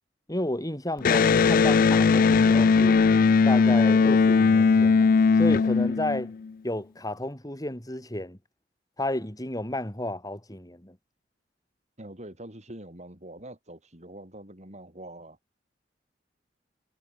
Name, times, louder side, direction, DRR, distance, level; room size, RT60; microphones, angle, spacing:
voice 1, 0.3-3.1 3.5-5.1 5.4-6.3 6.6-8.4 9.0-11.0, left 1 dB, 20° left, 4.0 m, -32 dB
Electric guitar, 1.0-6.5, left 5 dB, 50° left, 0.4 m, -19 dB
voice 2, 12.0-15.4, right 1 dB, 40° right, 8.0 m, -44 dB
head